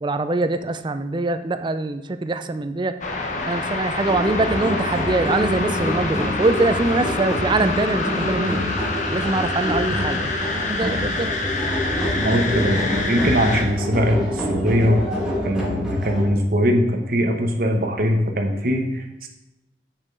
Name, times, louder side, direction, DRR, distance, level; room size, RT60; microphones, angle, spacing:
voice 1, 0.0-3.0 3.5-8.7 9.1-10.3 10.7-11.3, right 2 dB, 25° right, 10 dB, 0.4 m, -23 dB
sound 1, 3.0-13.6, left 3 dB, 45° left, 1.0 m, -27 dB
sound 2, 4.0-16.2, left 1 dB, 5° right, 1.6 m, -26 dB
voice 2, 12.2-15.0 15.4-19.3, equal, 55° right, 3 dB, 1.0 m, -21 dB
6.6 x 5.9 x 5.3 m, 0.94 s
head